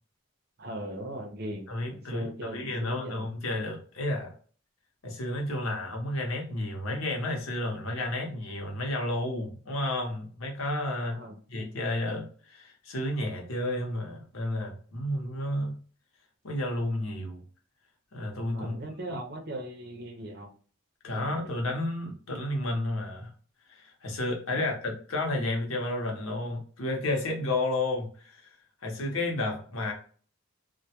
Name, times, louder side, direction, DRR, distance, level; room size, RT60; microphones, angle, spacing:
voice 1, 0.6-3.2 11.1-11.4 18.5-20.5 21.1-21.6 24.5-24.7, right 1 dB, 50° right, 3 dB, 0.5 m, -39 dB
voice 2, 1.7-4.3 5.0-11.2 11.5-15.8 16.4-17.4 18.1-18.7 19.1-19.2 21.0-23.3 23.7-28.5 28.8-29.9, left 1 dB, 80° left, 1 dB, 0.8 m, -31 dB
2.2 x 2.1 x 2.8 m, 0.42 s
head